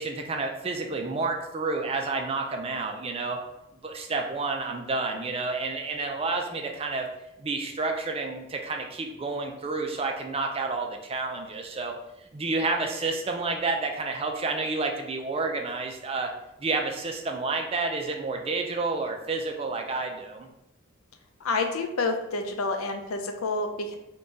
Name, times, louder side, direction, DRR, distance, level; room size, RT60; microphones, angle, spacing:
voice 1, 0.0-3.4 3.8-7.1 7.4-11.9 12.3-16.3 16.6-20.5, right 3 dB, 25° right, 3 dB, 0.4 m, -30 dB
voice 2, 21.4-24.0, left 3 dB, 90° left, 5 dB, 0.5 m, -28 dB
3.8 x 2.3 x 3.8 m, 0.91 s
head